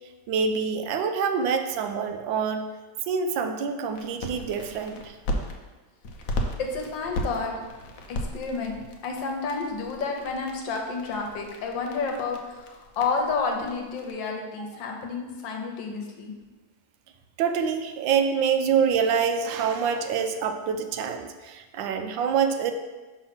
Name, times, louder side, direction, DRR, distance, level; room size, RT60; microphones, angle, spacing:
voice 1, 0.3-2.7 3.1-5.1 14.6-14.7 17.4-22.7, right 6 dB, 85° right, 7 dB, 1.3 m, -26 dB
sound 1, 3.9-5.5 6.0-14.1, left 1 dB, 60° left, 0.9 m, -36 dB
voice 2, 6.6-7.6 8.1-8.8 9.0-16.3, left 4 dB, 75° left, 2 dB, 1.6 m, -30 dB
5.8 x 3.8 x 5.8 m, 1.2 s
omnidirectional pair, 2.1 m